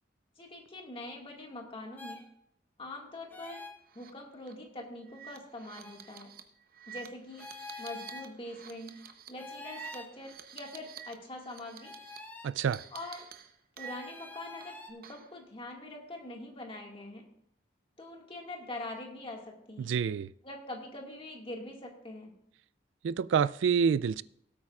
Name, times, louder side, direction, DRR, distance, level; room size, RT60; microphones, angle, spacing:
voice 1, 0.4-2.2 2.8-3.6 3.9-6.3 6.9-7.5 7.8-9.0 9.3-11.9 12.9-13.3 13.8-17.3 18.0-20.0 20.4-22.3, left 2 dB, 30° left, 1.8 m, -43 dB
sound 1, 2.0-2.2 3.3-3.8 5.8-6.0 7.4-8.3 9.4-10.1 11.8-12.5 13.8-14.9, left 3 dB, 10° left, 1.1 m, -46 dB
sound 2, 3.9-4.1 4.4-4.5 5.1-11.1 11.4-12.2 12.7-14.2 14.6-15.4, right 9 dB, 55° right, 0.9 m, -49 dB
voice 2, 12.4-12.8 19.8-20.3 23.0-24.2, right 7 dB, 80° right, 0.3 m, -27 dB
17.5 x 8.5 x 2.4 m
head